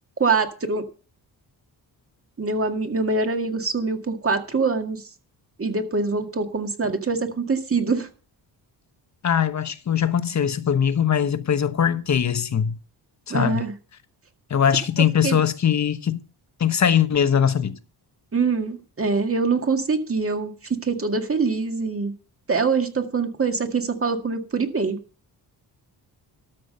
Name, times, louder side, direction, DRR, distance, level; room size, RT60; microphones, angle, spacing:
voice 1, 0.2-0.9 2.4-5.0 5.6-8.1 13.3-13.7 15.2-15.4 18.3-22.1 22.5-25.0, right 4 dB, 30° right, 2.0 m, -24 dB
voice 2, 9.2-12.8 13.3-13.6 14.5-16.2 16.6-17.8, left 8 dB, 40° left, 1.1 m, -21 dB
13.0 x 6.0 x 6.7 m
cardioid pair, 90°, 42 cm